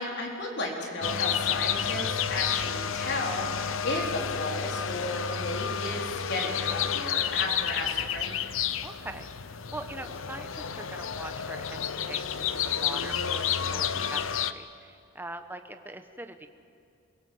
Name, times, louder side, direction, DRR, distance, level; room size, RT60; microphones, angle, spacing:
voice 1, 0.0-8.4, left 2 dB, 55° left, 0 dB, 4.3 m, -34 dB
sound 1, 1.0-14.5, left 8 dB, 75° left, 0.8 m, -30 dB
voice 2, 8.8-16.5, right 2 dB, 10° right, 7 dB, 1.1 m, -42 dB
28.5 x 17.5 x 7.9 m, 2.4 s
head